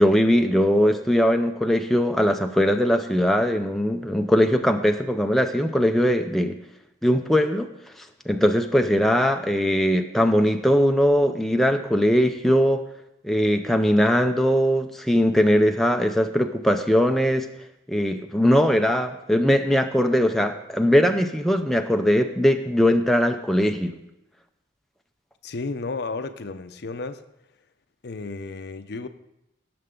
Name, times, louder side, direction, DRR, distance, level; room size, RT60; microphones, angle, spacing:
voice 1, 0.0-6.6 7.0-7.7 8.0-12.8 13.2-17.5 17.9-23.9, equal, ahead, 4 dB, 0.5 m, -20 dB
voice 2, 25.4-27.2 28.0-29.1, left 3 dB, 55° left, 10 dB, 0.6 m, -32 dB
17.5 x 6.8 x 3.8 m, 0.88 s
head